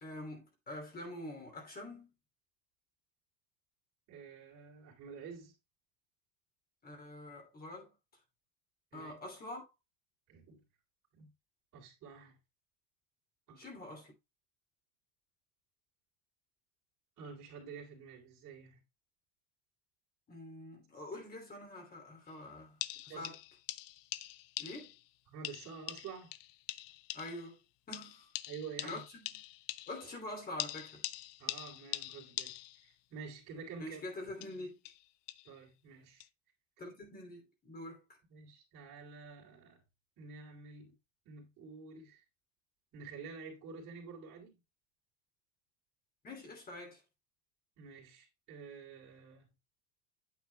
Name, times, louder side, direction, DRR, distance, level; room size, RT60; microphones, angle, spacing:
voice 1, 0.0-2.1 6.8-7.9 8.9-9.6 13.6-14.1 20.3-22.8 23.1-23.4 24.6-24.9 27.1-27.6 27.9-28.3 28.8-29.4 29.9-31.1 33.8-34.8 36.8-38.0 46.2-47.0, left 1 dB, 25° left, 2.9 m, -45 dB
voice 2, 4.1-5.5 8.9-9.2 10.3-10.6 11.1-11.3 11.7-12.4 13.5-13.7 17.2-18.8 23.1-23.3 25.3-26.3 28.5-29.0 31.4-34.0 35.5-36.3 38.3-39.8 40.2-40.9 41.3-42.2 42.9-44.6 47.8-49.5, right 5 dB, 45° right, 3.5 m, -49 dB
sound 1, 22.3-22.4 22.8-25.1 25.4-27.5 27.9-30.2 30.6-32.9 34.3-35.5 36.2-36.3, left 18 dB, 70° left, 0.6 m, -43 dB
9.0 x 7.9 x 2.3 m
supercardioid pair, 135°, 38 cm